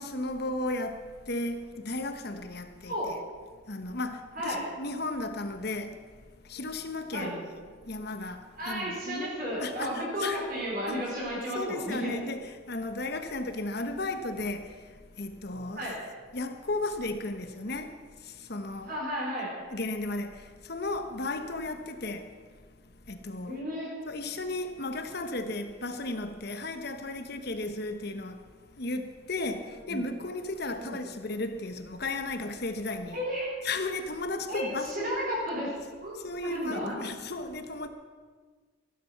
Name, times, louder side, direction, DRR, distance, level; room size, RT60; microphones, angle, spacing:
voice 1, 0.0-3.2 3.7-6.1 6.5-7.5 7.9-9.3 9.6-10.4 10.9-11.0 11.5-14.8 15.2-15.9 16.3-18.9 19.7-22.3 23.1-23.6 24.0-28.4 28.8-33.2 33.6-35.2 36.2-37.9, left 2 dB, 55° left, 1.2 m, -35 dB
voice 2, 2.9-3.2 4.4-4.6 7.1-7.3 8.6-12.2 15.7-16.0 18.8-19.5 23.5-23.9 29.9-30.0 30.8-31.0 33.1-33.5 34.5-36.2 36.4-37.0, equal, 45° right, 4.5 m, -33 dB
15.0 x 11.5 x 5.9 m
head